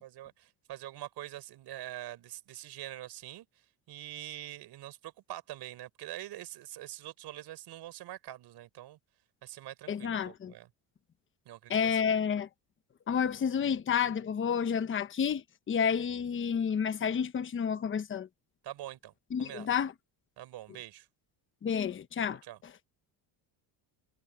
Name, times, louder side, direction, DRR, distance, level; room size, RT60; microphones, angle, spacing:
voice 1, 0.0-3.4 3.9-9.0 9.4-10.7 11.5-12.0 18.6-19.1 19.4-19.7 20.4-21.1 22.5-22.6, right 14 dB, 60° right, 4.5 m, -44 dB
voice 2, 9.9-10.5 11.7-12.5 13.1-18.3 19.3-19.9 21.6-22.4, left 7 dB, 25° left, 1.1 m, -30 dB
cardioid pair, 135°, 44 cm